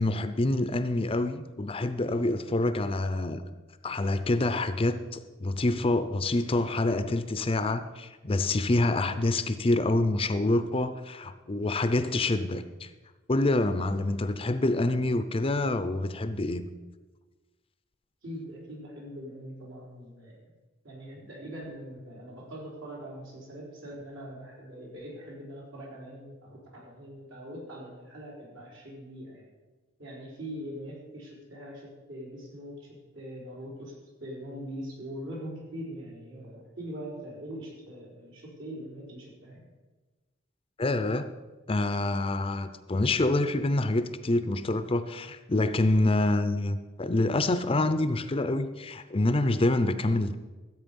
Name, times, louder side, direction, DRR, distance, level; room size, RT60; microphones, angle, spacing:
voice 1, 0.0-3.4 3.8-12.9 13.3-16.7 40.8-41.3 41.7-50.4, left 2 dB, 25° left, 11 dB, 0.5 m, -27 dB
voice 2, 18.2-20.4 20.8-29.5 30.0-33.9 34.2-39.7, equal, 75° right, -3 dB, 4.3 m, -42 dB
14.0 x 8.2 x 5.4 m, 1.2 s
head